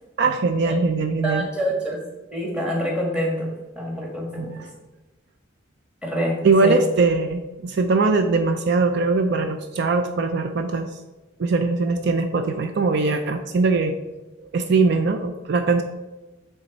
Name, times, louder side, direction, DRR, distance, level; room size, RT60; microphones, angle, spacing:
voice 1, 0.2-1.5 4.4-4.7 6.4-10.9 11.4-13.9 14.4-15.8, right 3 dB, 55° right, 7 dB, 0.4 m, -21 dB
voice 2, 1.2-2.0 2.3-4.5 6.0-6.4 6.6-6.8, equal, 5° right, -2 dB, 1.4 m, -26 dB
8.5 x 3.4 x 4.0 m, 1.1 s
head